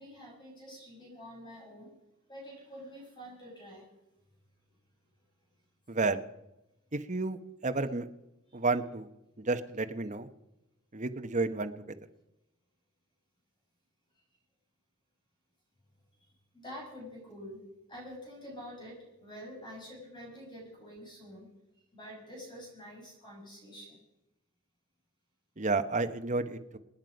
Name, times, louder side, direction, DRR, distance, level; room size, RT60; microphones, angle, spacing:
voice 1, 0.0-2.0 2.3-3.9 8.5-8.6 16.2-16.3 16.5-17.6 17.9-21.5 21.7-24.0, equal, 20° left, -3 dB, 6.5 m, -47 dB
voice 2, 5.9-6.2 6.9-8.1 8.5-9.1 9.5-10.3 10.9-12.0 25.6-26.8, right 3 dB, 35° right, 8 dB, 0.9 m, -31 dB
27.0 x 9.4 x 5.2 m, 0.92 s
head